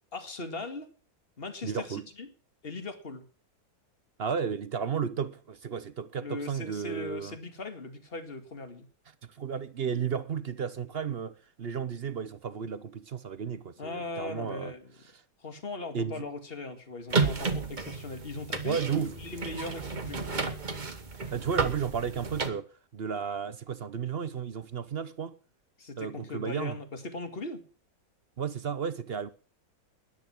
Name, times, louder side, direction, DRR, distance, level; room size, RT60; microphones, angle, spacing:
voice 1, 0.1-0.9 1.4-2.3 2.6-3.3 6.2-8.9 13.8-14.9 15.4-20.4 25.8-27.7, left 3 dB, 30° left, 2.2 m, -39 dB
voice 2, 1.6-2.0 4.2-7.4 9.3-14.7 15.9-16.3 18.6-19.1 21.1-25.3 26.0-26.8 28.4-29.3, right 7 dB, 50° right, 0.7 m, -33 dB
sound 1, 17.1-22.5, right 4 dB, 30° right, 1.3 m, -32 dB
13.5 x 10.5 x 6.0 m
omnidirectional pair, 1.9 m